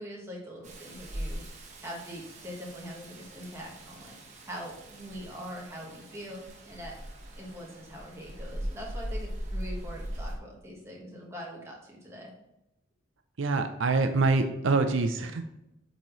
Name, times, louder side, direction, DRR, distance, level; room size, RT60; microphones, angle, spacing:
voice 1, 0.0-1.4 1.8-4.2 4.4-6.9 7.4-12.3, equal, 15° right, -3 dB, 1.3 m, -42 dB
Rain, 0.6-10.4, equal, 35° right, 1.0 m, -40 dB
voice 2, 13.4-15.4, right 3 dB, 75° right, 7 dB, 0.5 m, -25 dB
8.5 x 4.0 x 3.1 m, 0.87 s
head